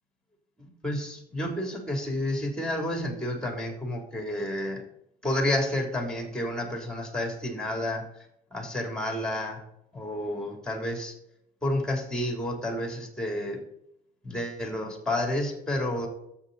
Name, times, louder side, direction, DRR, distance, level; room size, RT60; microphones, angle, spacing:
voice 1, 0.6-4.8 5.2-8.1 8.5-9.6 9.9-11.1 11.6-13.6 14.2-16.1, left 1 dB, 5° left, 2 dB, 3.2 m, -30 dB
11.0 x 8.1 x 4.1 m, 0.78 s
cardioid pair, 110°, 17 cm